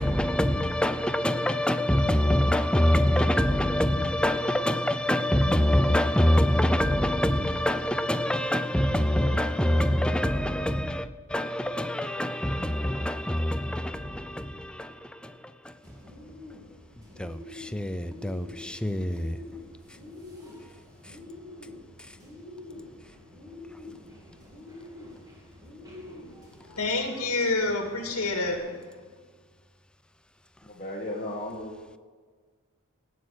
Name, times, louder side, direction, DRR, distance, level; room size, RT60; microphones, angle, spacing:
voice 1, 0.0-16.0 17.0-19.4 21.0-21.2 22.0-22.2, left 1 dB, 5° left, 0.5 m, -25 dB
Bird, 15.8-28.6, left 2 dB, 15° right, 2.7 m, -46 dB
voice 2, 26.8-29.0, left 2 dB, 85° left, 2.0 m, -28 dB
voice 3, 30.6-32.0, left 1 dB, 30° left, 1.5 m, -36 dB
18.5 x 6.6 x 6.4 m
head